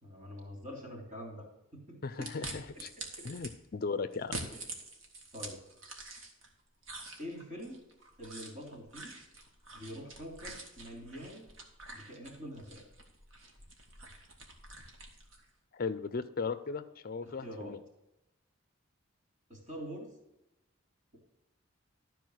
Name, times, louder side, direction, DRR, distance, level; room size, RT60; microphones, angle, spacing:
voice 1, 0.0-3.3 4.5-4.6 5.3-5.6 7.2-7.8 8.2-9.1 9.7-11.5 11.9-12.8 17.2-17.8 19.5-20.1, equal, 40° right, 0 dB, 3.1 m, -45 dB
voice 2, 2.0-2.9 3.2-4.3 15.7-17.8, left 4 dB, 45° left, 11 dB, 0.5 m, -37 dB
sound 1, 2.2-3.5 4.1-6.5 6.8-15.5, right 2 dB, 65° right, 1.7 m, -46 dB
12.5 x 4.6 x 6.3 m, 0.91 s
head